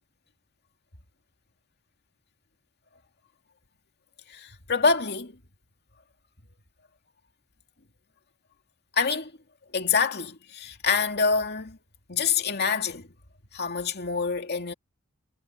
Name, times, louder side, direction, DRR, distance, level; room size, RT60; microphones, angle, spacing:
voice 1, 4.3-5.3 8.9-9.3 9.7-11.8 12.1-13.1 13.5-14.7, left 5 dB, 50° left, 2.4 m, -26 dB
head